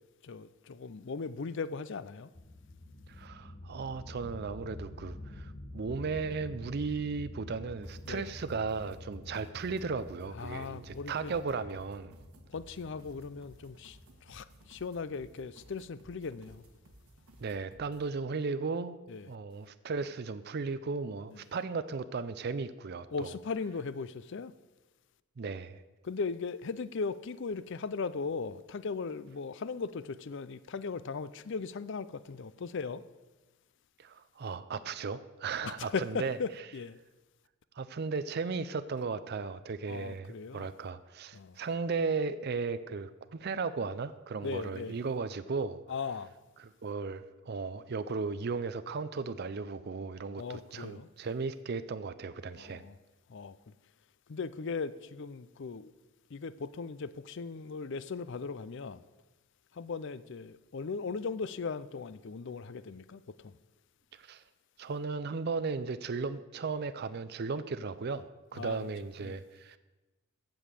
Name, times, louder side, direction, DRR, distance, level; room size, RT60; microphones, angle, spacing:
voice 1, 0.2-2.3 8.1-8.3 10.3-11.3 12.5-16.6 19.1-19.3 21.3-21.4 23.1-24.5 26.0-33.0 35.6-37.0 39.9-40.7 41.3-41.6 44.4-45.0 45.9-46.3 50.4-51.1 52.5-53.0 53.3-53.6 54.3-55.9 56.3-59.0 59.7-63.5 68.5-68.9 69.2-69.4, left 4 dB, 60° left, 0.5 m, -38 dB
sound 1, 2.3-14.7, left 1 dB, 35° left, 1.2 m, -48 dB
voice 2, 3.1-12.1 17.4-19.0 19.3-23.3 25.4-25.8 34.0-36.4 37.8-45.8 46.6-52.8 64.1-64.4 64.8-69.8, right 4 dB, 50° right, 0.5 m, -36 dB
sound 2, 7.8-18.1, right 1 dB, 85° right, 1.6 m, -58 dB
15.0 x 5.3 x 7.5 m
head